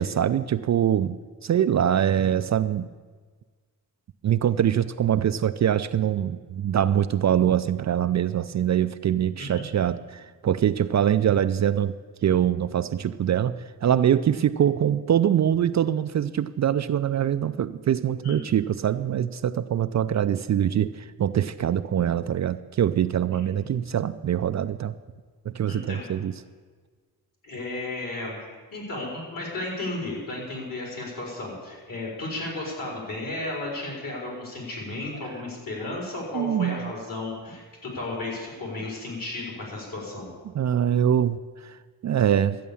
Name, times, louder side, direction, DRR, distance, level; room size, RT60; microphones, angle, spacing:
voice 1, 0.0-2.9 4.2-11.9 12.2-25.0 25.5-26.3 36.3-36.9 40.5-42.6, right 10 dB, 45° right, 11 dB, 0.4 m, -24 dB
voice 2, 25.7-26.0 27.4-40.3, left 2 dB, 55° left, -2 dB, 4.6 m, -34 dB
12.5 x 8.5 x 7.0 m, 1.5 s
cardioid pair, 100°, 39 cm